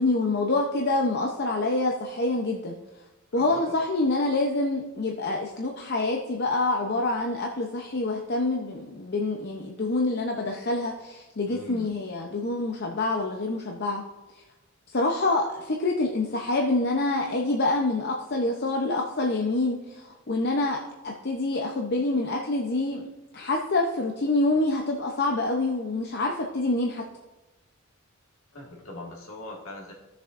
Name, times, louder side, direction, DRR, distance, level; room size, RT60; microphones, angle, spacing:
voice 1, 0.0-2.8 3.3-14.0 14.9-20.8 21.0-23.0 23.3-27.0, left 2 dB, 50° left, 1 dB, 0.7 m, -26 dB
voice 2, 3.3-3.6 11.5-11.9 28.5-29.9, left 2 dB, 65° left, -2 dB, 2.0 m, -41 dB
15.5 x 6.8 x 2.5 m, 1.1 s
head